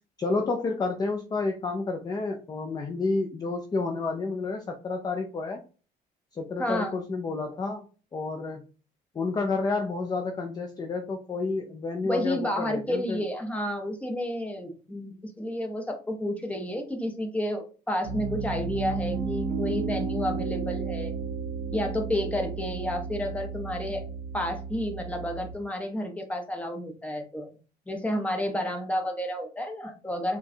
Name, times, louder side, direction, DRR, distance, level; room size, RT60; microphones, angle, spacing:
voice 1, 0.2-5.6 6.3-7.8 8.1-8.6 9.1-13.2, left 3 dB, 25° left, 3 dB, 0.5 m, -30 dB
voice 2, 6.6-6.9 12.0-21.1 21.7-24.0 24.3-27.5 27.9-30.4, left 1 dB, 10° left, 3 dB, 0.8 m, -31 dB
Piano, 18.0-25.5, right 4 dB, 25° right, 1.8 m, -33 dB
4.5 x 2.3 x 2.7 m, 0.36 s
cardioid pair, 110°, 17 cm